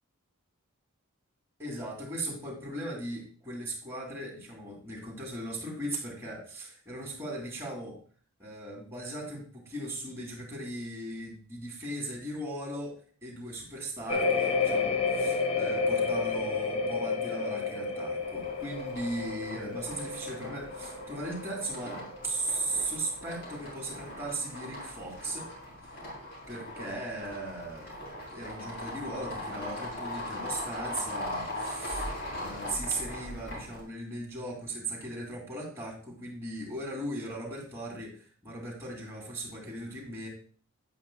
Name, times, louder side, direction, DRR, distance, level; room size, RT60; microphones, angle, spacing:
voice 1, 1.6-8.0 8.4-13.0 13.2-22.0 22.2-25.5 26.5-27.9 28.3-40.3, right 1 dB, 15° right, -2 dB, 2.4 m, -38 dB
sound 1, 14.1-22.7 23.0-23.5, left 4 dB, 25° left, 0.6 m, -31 dB
sound 2, 18.2-33.8, left 1 dB, 50° left, 3.3 m, -40 dB
8.6 x 8.2 x 2.2 m, 0.43 s
head